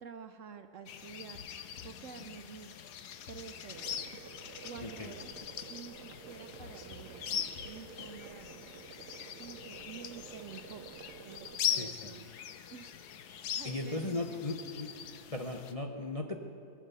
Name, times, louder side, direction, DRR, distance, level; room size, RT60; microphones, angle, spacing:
voice 1, 0.0-1.4 1.8-2.7 3.3-4.0 4.6-5.3 5.7-8.6 9.1-12.3 12.7-13.0 13.3-14.4, right 7 dB, 60° right, 8 dB, 0.9 m, -49 dB
sound 1, 0.9-15.7, left 8 dB, 75° left, 1.3 m, -41 dB
sound 2, 1.3-2.4 2.6-2.7 3.1-4.4 4.8-8.1, left 6 dB, 55° left, 1.1 m, -52 dB
sound 3, 3.7-11.6, right 8 dB, 85° right, 1.3 m, -51 dB
voice 2, 4.8-5.1 11.6-12.1 13.6-14.9 15.3-16.4, left 2 dB, 30° left, 2 dB, 0.7 m, -37 dB
22.0 x 7.4 x 8.2 m, 2.7 s
omnidirectional pair, 1.7 m